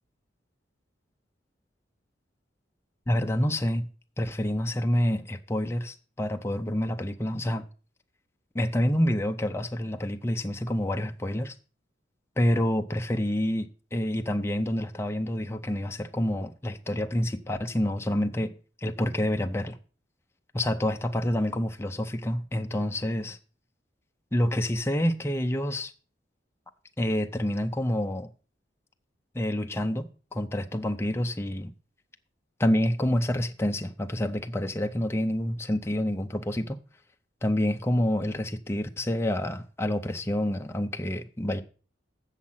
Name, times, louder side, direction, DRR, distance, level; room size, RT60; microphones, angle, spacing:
voice 1, 3.1-3.9 4.2-7.6 8.5-11.5 12.4-19.8 20.5-23.4 24.3-25.9 27.0-28.3 29.3-31.7 32.6-36.8 37.4-41.6, left 1 dB, 15° left, 0.6 m, -28 dB
7.4 x 7.3 x 5.7 m
head